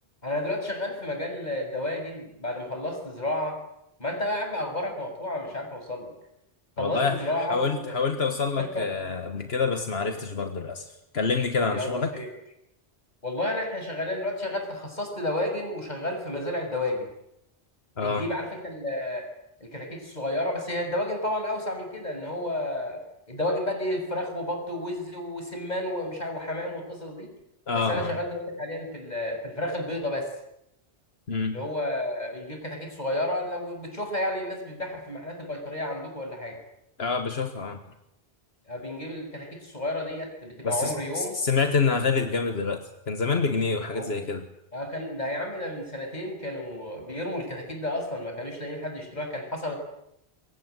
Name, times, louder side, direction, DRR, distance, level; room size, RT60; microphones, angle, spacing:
voice 1, 0.2-3.6 4.0-6.1 6.8-8.0 8.6-8.9 11.7-12.3 13.2-17.1 18.0-19.3 19.6-23.0 23.3-27.3 27.7-30.3 31.5-36.6 38.7-41.3 43.9-44.1 44.7-49.8, left 1 dB, 45° left, 4 dB, 6.7 m, -31 dB
voice 2, 6.8-12.1 18.0-18.2 27.7-28.1 31.3-31.6 37.0-37.8 40.6-44.4, left 4 dB, 80° left, 6 dB, 1.8 m, -27 dB
27.0 x 23.0 x 8.1 m, 0.79 s
omnidirectional pair, 1.0 m